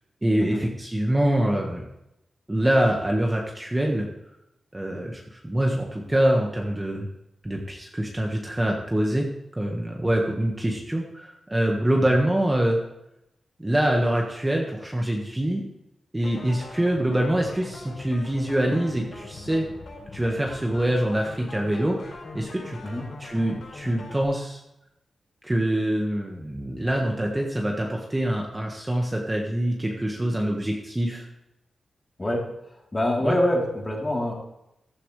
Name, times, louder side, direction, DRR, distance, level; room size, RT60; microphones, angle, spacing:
voice 1, 0.2-1.8 2.5-4.1 4.7-7.1 7.4-9.3 9.6-12.8 13.6-15.6 16.1-19.7 20.1-22.8 23.2-24.6 25.4-31.3 33.2-33.3, right 1 dB, 15° right, 0 dB, 1.6 m, -25 dB
sound 1, 16.2-24.2, left 3 dB, 80° left, 5.1 m, -41 dB
voice 2, 32.9-34.3, left 1 dB, 25° left, -2 dB, 3.5 m, -25 dB
15.0 x 12.5 x 3.3 m, 0.86 s
wide cardioid pair, 95°, 0 cm